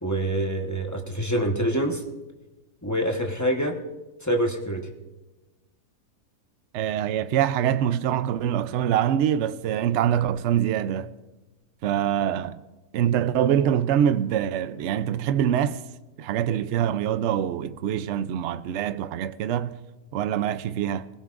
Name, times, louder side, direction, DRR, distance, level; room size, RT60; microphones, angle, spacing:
voice 1, 0.0-2.0 2.8-3.8 4.2-4.9, right 1 dB, 10° left, 1.1 m, -26 dB
voice 2, 6.7-11.1 11.8-12.6 12.9-15.8 16.2-19.8 20.1-21.1, right 10 dB, 65° right, 0.7 m, -24 dB
25.0 x 16.5 x 2.5 m
omnidirectional pair, 1.7 m